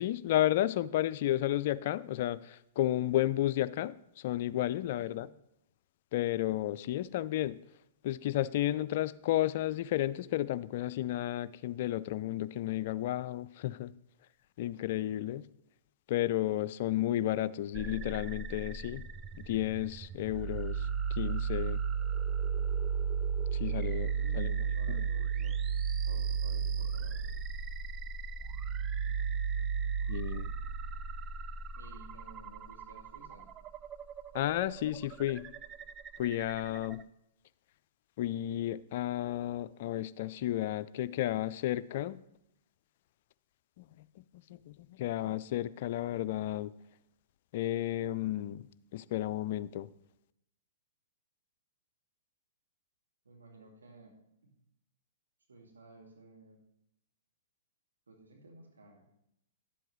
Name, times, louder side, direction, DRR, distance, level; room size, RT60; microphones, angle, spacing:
voice 1, 0.0-5.3 6.1-7.6 8.0-13.9 14.6-15.5 16.1-19.1 19.5-20.9 21.2-21.8 23.5-24.6 24.9-25.1 30.1-30.5 34.3-35.5 36.2-37.1 38.2-42.2 43.8-43.9 44.3-46.7 47.5-48.6 48.9-49.9, left 13 dB, 55° left, 15 dB, 0.4 m, -32 dB
voice 2, 4.7-5.3 24.0-25.6 26.0-27.3 31.7-33.5 53.2-54.5 55.5-56.6 58.1-59.0, right 2 dB, 85° right, 1 dB, 2.0 m, -55 dB
sound 1, 17.7-37.0, right 6 dB, 25° right, 0.4 m, -35 dB
11.0 x 7.8 x 3.1 m, 0.81 s
hypercardioid pair, 115°, 0 cm